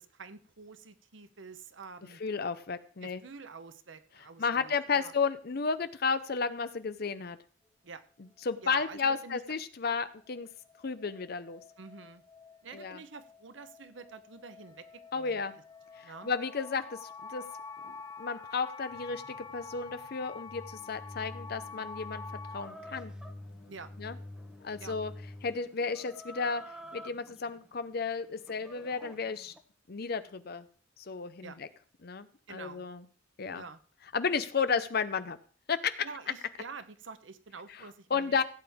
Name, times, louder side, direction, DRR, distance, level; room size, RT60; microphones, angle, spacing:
voice 1, 0.0-2.2 3.0-5.1 7.8-8.0 8.6-9.4 11.8-12.2 12.6-15.4 16.0-16.3 23.7-23.9 24.8-24.9 31.4-31.6 32.5-32.8 33.5-33.8 34.7-34.8 36.0-38.4, right 4 dB, 70° right, 12 dB, 0.9 m, -47 dB
voice 2, 2.2-3.2 4.4-7.4 8.4-10.5 10.8-11.6 12.7-13.0 15.1-15.5 16.0-17.4 17.8-22.2 22.5-23.1 24.0-24.1 24.6-25.1 25.4-26.6 26.9-29.5 29.9-30.7 31.0-31.7 32.0-33.0 33.4-33.6 34.1-35.4 35.7-35.9 37.7-37.8 38.1-38.4, left 5 dB, 55° left, 12 dB, 0.6 m, -33 dB
sound 1, 10.2-22.7, left 4 dB, 20° left, 0.4 m, -47 dB
sound 2, 18.9-25.6, left 1 dB, 35° left, 1.3 m, -48 dB
Chicken rooster, 22.6-29.6, equal, 5° right, 0.9 m, -51 dB
16.0 x 8.7 x 3.5 m, 0.42 s
head